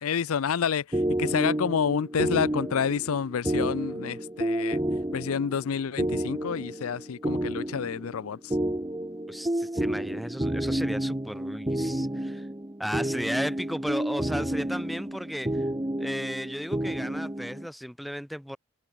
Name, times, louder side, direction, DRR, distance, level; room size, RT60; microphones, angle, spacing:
voice 1, 0.0-4.8 5.1-8.6, left 7 dB, 80° left, 0.5 m, -29 dB
sound 1, 0.9-17.7, right 1 dB, 15° right, 1.0 m, -30 dB
voice 2, 9.3-12.5 12.8-15.7 16.0-18.6, equal, ahead, 0.6 m, -35 dB
head